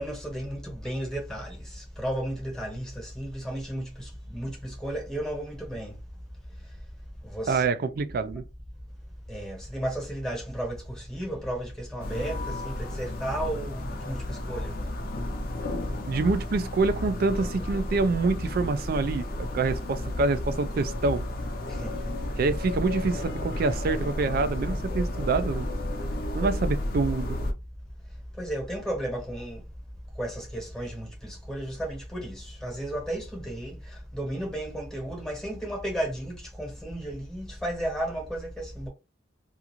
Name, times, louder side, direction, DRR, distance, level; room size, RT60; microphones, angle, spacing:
voice 1, 0.0-6.0 7.2-7.7 9.3-14.8 21.7-22.4 26.4-26.5 28.4-29.6 30.2-38.9, right 1 dB, 5° left, 1.0 m, -34 dB
voice 2, 7.5-8.4 16.1-21.3 22.4-25.7 26.3-27.4, right 3 dB, 50° right, 0.3 m, -26 dB
sound 1, 12.0-27.5, left 1 dB, 50° left, 0.5 m, -32 dB
2.4 x 2.4 x 2.9 m
head